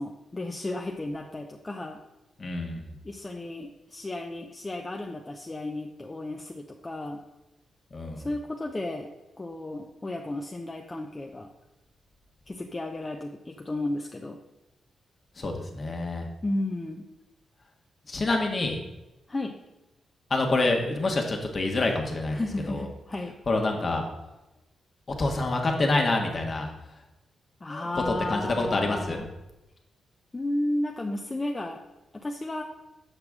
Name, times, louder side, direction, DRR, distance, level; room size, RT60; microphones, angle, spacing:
voice 1, 0.0-2.0 3.0-7.2 8.2-9.1 9.4-11.5 12.5-14.4 16.4-17.0 19.3-19.6 22.3-23.4 27.6-29.3 30.3-31.8 32.1-32.6, left 2 dB, 25° left, 2 dB, 0.6 m, -33 dB
voice 2, 2.4-2.8 7.9-8.3 15.4-16.3 18.1-18.8 20.3-22.4 22.7-22.8 23.5-24.0 25.1-26.7 27.7-29.2, left 2 dB, 45° left, 2 dB, 1.4 m, -27 dB
6.5 x 6.1 x 3.6 m, 0.99 s
supercardioid pair, 55°, 0 cm